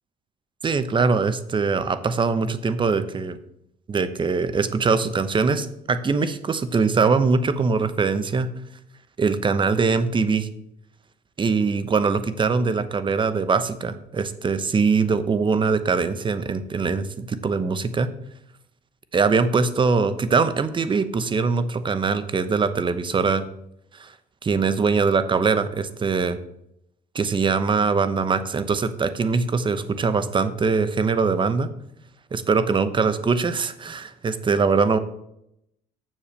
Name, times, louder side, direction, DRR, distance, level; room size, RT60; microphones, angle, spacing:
voice 1, 0.6-3.4 3.9-8.5 9.2-10.5 11.4-18.1 19.1-23.4 24.0-24.1 24.4-26.4 27.1-31.7 32.3-35.0, right 4 dB, 30° right, 12 dB, 0.9 m, -22 dB
7.3 x 7.0 x 6.9 m, 0.78 s
cardioid pair, 110°, 17 cm